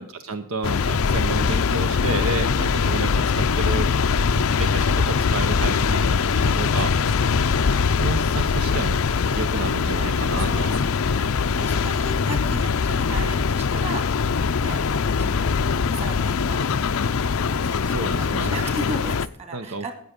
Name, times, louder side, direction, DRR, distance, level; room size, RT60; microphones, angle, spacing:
voice 1, 0.0-3.9 4.3-6.9 8.0-10.7 11.2-11.3 17.8-18.5 19.5-19.9, right 3 dB, 70° right, 9 dB, 0.9 m, -31 dB
sound 1, 0.6-19.3, left 5 dB, 65° left, 0.5 m, -22 dB
voice 2, 4.1-4.7 6.4-7.8 8.5-8.8 9.3-9.5 10.3-15.6 15.9-17.2 17.6-19.9, right 1 dB, 30° right, 7 dB, 2.2 m, -37 dB
13.5 x 8.4 x 5.2 m, 0.65 s
head